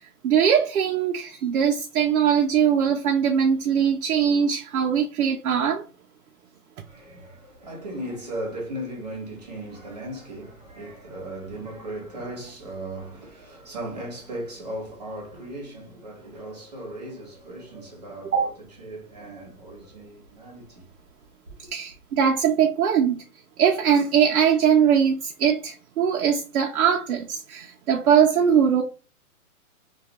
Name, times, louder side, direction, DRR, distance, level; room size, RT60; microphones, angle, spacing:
voice 1, 0.2-5.8 18.3-18.4 21.7-23.2 23.6-28.8, right 8 dB, 75° right, 0.5 m, -21 dB
voice 2, 6.8-18.5 18.8-20.9, right 1 dB, 30° right, 0.7 m, -37 dB
2.2 x 2.2 x 2.8 m
hypercardioid pair, 175°, 44 cm